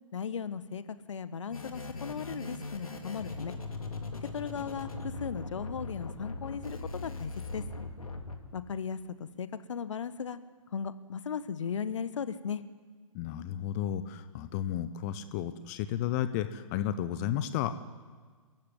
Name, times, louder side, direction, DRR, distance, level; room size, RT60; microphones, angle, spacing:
voice 1, 0.1-3.5 4.3-7.6 8.5-9.0 9.4-10.4 10.7-12.6, left 7 dB, 60° left, 13 dB, 1.3 m, -37 dB
sound 1, 1.5-8.3, left 3 dB, 75° left, 3.2 m, -40 dB
voice 2, 13.1-17.8, left 11 dB, 30° left, 11 dB, 1.1 m, -33 dB
27.0 x 15.0 x 9.6 m, 1.5 s
figure-of-eight pair, 125°, 18 cm